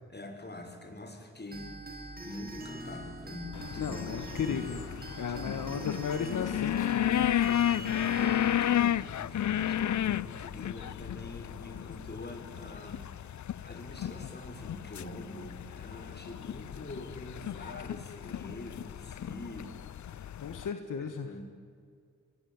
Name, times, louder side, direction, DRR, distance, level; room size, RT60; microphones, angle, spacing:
voice 1, 0.1-1.7 2.2-4.6 5.5-5.7 8.2-13.1 13.6-19.7 20.1-20.2 21.0-21.4, left 1 dB, 35° left, 5 dB, 6.3 m, -45 dB
sound 1, 1.5-8.5, right 1 dB, 30° right, 6.3 m, -43 dB
sound 2, 3.5-20.7, left 11 dB, 65° left, 0.6 m, -33 dB
voice 2, 3.8-4.8 5.2-8.1 20.4-21.3, left 6 dB, 80° left, 7 dB, 1.6 m, -36 dB
24.0 x 22.5 x 9.6 m, 2.2 s
cardioid pair, 50°, 31 cm